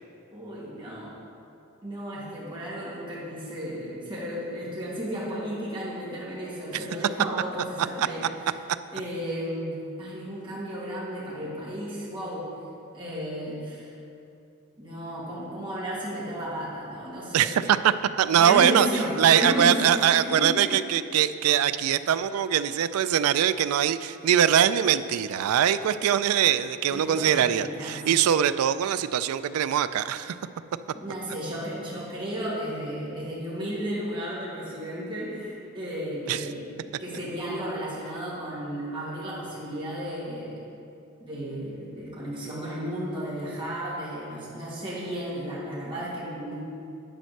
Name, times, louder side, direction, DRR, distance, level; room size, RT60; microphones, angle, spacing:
voice 1, 0.3-1.2 1.8-8.3 8.9-12.4 12.9-13.9 14.8-17.6 18.4-20.7 26.9-28.0 30.9-40.6 41.2-46.6, equal, 25° right, -8 dB, 2.1 m, -33 dB
voice 2, 17.3-18.9 19.2-30.4 36.3-36.4, right 9 dB, 75° right, 14 dB, 0.3 m, -22 dB
9.3 x 4.4 x 6.5 m, 2.6 s
head